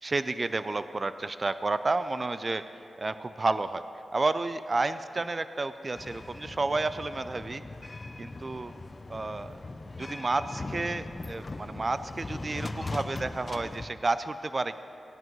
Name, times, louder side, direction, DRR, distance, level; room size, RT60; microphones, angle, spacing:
voice 1, 0.0-2.6 3.0-3.8 4.1-7.6 8.2-8.7 9.1-9.6 10.0-14.8, right 3 dB, 40° right, 12 dB, 0.4 m, -31 dB
sound 1, 5.9-13.9, left 2 dB, 35° left, 0.5 m, -39 dB
18.5 x 10.5 x 3.1 m, 2.7 s
cardioid pair, 60°, 0 cm